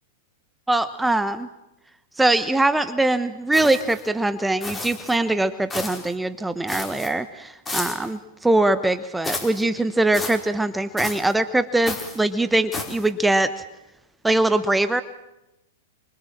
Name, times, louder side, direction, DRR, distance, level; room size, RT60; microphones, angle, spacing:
voice 1, 0.7-1.5 2.2-13.5 14.2-15.0, right 2 dB, 5° right, 12 dB, 1.1 m, -22 dB
sound 1, 3.5-4.0 4.6-5.2 5.7-6.1 6.7-7.1 7.6-8.1 9.2-9.6 10.1-10.4 11.0-11.3 11.8-12.2 12.7-13.1, left 2 dB, 15° left, 4.8 m, -32 dB
28.0 x 24.0 x 7.5 m, 0.94 s
figure-of-eight pair, 100°, 0 cm